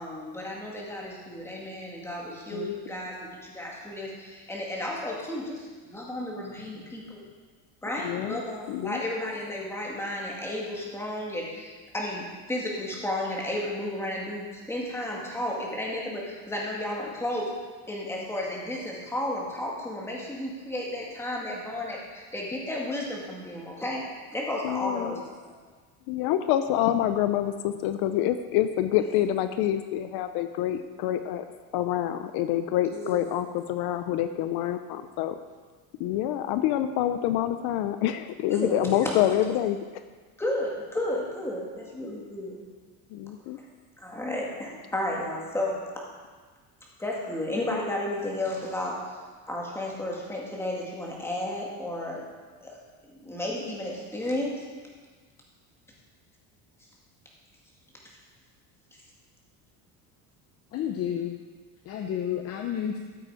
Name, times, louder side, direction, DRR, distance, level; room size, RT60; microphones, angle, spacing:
voice 1, 0.0-7.2 7.8-17.5 17.9-24.1 24.3-25.5 28.9-29.1 32.9-33.2 38.5-39.3 40.4-42.6 44.0-45.8 47.0-49.2 49.5-52.2 52.6-52.8 53.0-54.6, left 1 dB, 5° left, -3 dB, 2.1 m, -33 dB
voice 2, 8.0-8.4 8.7-9.0 24.6-25.2 26.1-31.4 31.7-35.4 36.0-39.8 43.1-43.6, left 12 dB, 75° left, 10 dB, 0.7 m, -27 dB
voice 3, 60.7-61.4 61.8-63.0, left 9 dB, 40° left, 4 dB, 0.7 m, -30 dB
13.5 x 7.6 x 4.9 m, 1.5 s
cardioid pair, 165°, 39 cm